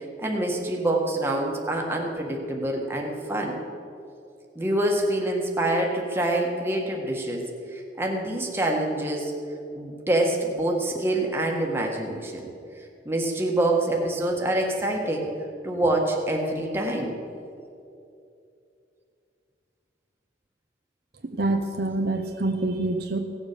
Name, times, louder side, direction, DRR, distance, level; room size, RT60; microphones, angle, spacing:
voice 1, 0.2-3.5 4.5-7.4 7.7-9.3 9.7-12.4 13.0-15.3 15.6-17.1, right 1 dB, 15° right, 0 dB, 1.5 m, -26 dB
voice 2, 21.2-23.2, right 2 dB, 60° right, 5 dB, 0.7 m, -26 dB
17.0 x 7.3 x 6.7 m, 2.6 s
head